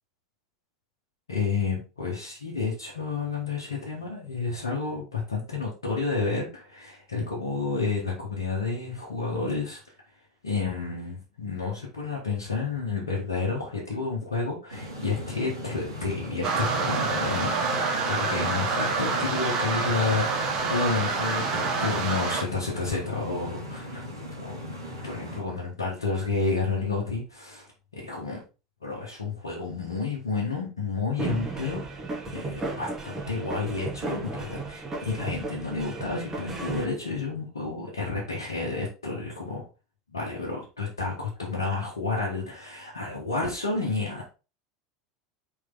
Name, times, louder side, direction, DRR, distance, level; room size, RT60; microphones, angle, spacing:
voice 1, 1.3-9.8 10.4-24.0 24.4-24.8 25.0-27.7 27.9-28.4 28.8-32.0 32.3-39.6 40.1-44.3, left 4 dB, 75° left, -4 dB, 1.8 m, -30 dB
sound 1, 14.7-25.4, left 1 dB, 80° right, 2.3 m, -38 dB
sound 2, 16.4-22.4, right 4 dB, 45° right, 1.6 m, -27 dB
sound 3, 31.2-36.8, right 3 dB, 20° right, 2.2 m, -35 dB
5.0 x 4.8 x 3.8 m, 0.31 s
figure-of-eight pair, 80°, 2 cm